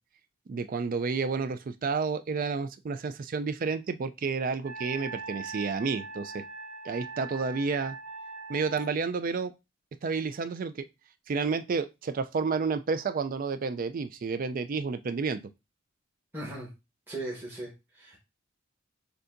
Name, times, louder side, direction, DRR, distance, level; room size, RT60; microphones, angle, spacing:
voice 1, 0.5-6.4 6.8-8.0 8.5-9.5 10.0-10.8 11.3-15.4, right 4 dB, 45° right, 0.4 m, -30 dB
Wind instrument woodwind instrument, 4.6-8.9, right 3 dB, 80° right, 1.1 m, -41 dB
voice 2, 16.3-16.7 17.1-18.2, right 2 dB, 10° right, 1.2 m, -38 dB
6.6 x 2.7 x 2.6 m
head